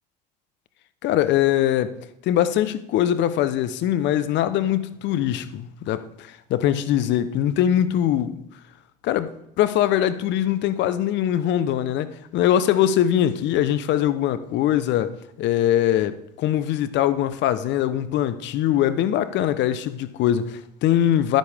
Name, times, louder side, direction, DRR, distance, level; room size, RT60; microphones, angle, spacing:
voice 1, 1.0-2.0 2.2-8.4 9.0-9.3 9.6-21.4, left 11 dB, 60° left, 0.9 m, -22 dB
11.5 x 9.3 x 3.6 m
supercardioid pair, 85°, 21 cm